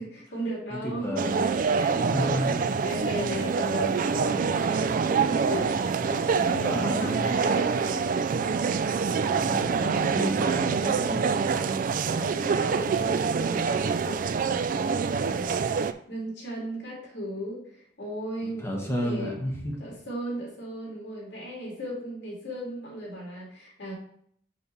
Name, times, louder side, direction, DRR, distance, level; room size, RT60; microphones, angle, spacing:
voice 1, 0.0-1.2 1.8-2.3 2.6-8.1 11.5-19.4 19.8-23.9, equal, 75° left, -4 dB, 2.8 m, -36 dB
voice 2, 0.7-1.6 1.9-2.8 6.4-7.4 9.4-11.5 18.4-19.8, equal, 15° left, -1 dB, 1.4 m, -32 dB
sound 1, 1.2-15.9, right 5 dB, 50° right, 0.3 m, -26 dB
6.9 x 3.3 x 5.5 m, 0.65 s
head